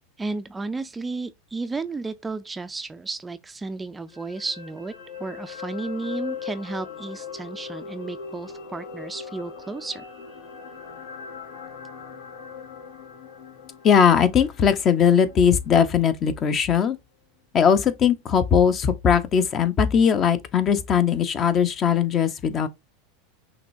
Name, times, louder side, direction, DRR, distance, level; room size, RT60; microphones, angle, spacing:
voice 1, 0.2-4.9 5.2-10.0, right 3 dB, 15° right, 0.4 m, -33 dB
sound 1, 4.1-16.4 16.7-16.9, left 7 dB, 70° left, 2.6 m, -40 dB
voice 2, 13.8-17.0 17.5-22.7, left 7 dB, 35° left, 0.8 m, -19 dB
5.8 x 3.2 x 2.6 m
supercardioid pair, 120°, 0 cm